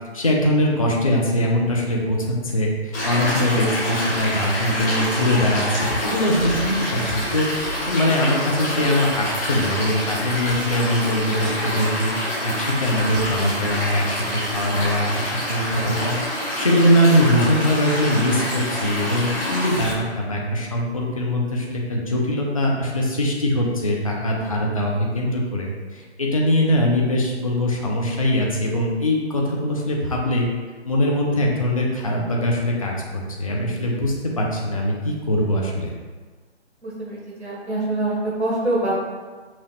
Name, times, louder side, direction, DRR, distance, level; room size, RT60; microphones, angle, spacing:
voice 1, 0.1-12.1 12.4-30.5 30.8-35.9, left 1 dB, 30° left, -2 dB, 0.4 m, -22 dB
Stream, 2.9-19.9, left 1 dB, 15° left, 1.3 m, -27 dB
voice 2, 36.8-38.9, right 2 dB, 75° right, -6 dB, 1.4 m, -25 dB
5.7 x 2.4 x 3.0 m, 1.4 s
figure-of-eight pair, 145°, 34 cm